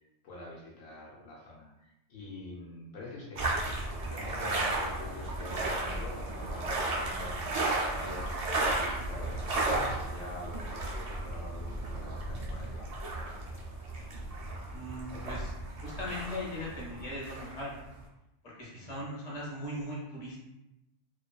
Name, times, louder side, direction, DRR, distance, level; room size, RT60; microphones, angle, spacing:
voice 1, 0.2-3.7 4.1-13.0 18.7-19.0, left 2 dB, 80° left, -5 dB, 1.0 m, -45 dB
sound 1, 3.4-18.0, right 2 dB, 70° right, 0.3 m, -34 dB
voice 2, 14.7-15.5 15.8-17.8 18.4-20.4, left 1 dB, 40° left, -5 dB, 0.9 m, -39 dB
2.4 x 2.3 x 2.2 m, 0.92 s
omnidirectional pair, 1.3 m